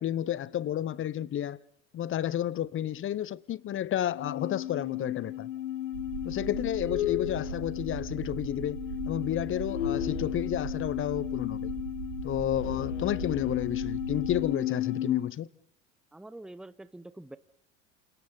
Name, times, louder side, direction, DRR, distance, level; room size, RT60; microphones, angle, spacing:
voice 1, 0.0-1.6 1.9-5.5 6.2-8.8 9.1-11.7 12.2-15.5, left 11 dB, 35° left, 0.9 m, -31 dB
sound 1, 4.1-15.3, left 12 dB, 85° left, 1.0 m, -34 dB
sound 2, 5.9-14.4, right 7 dB, 80° right, 3.2 m, -40 dB
voice 2, 16.1-17.4, right 1 dB, ahead, 0.9 m, -45 dB
29.5 x 28.0 x 4.0 m
hypercardioid pair, 80°, 36 cm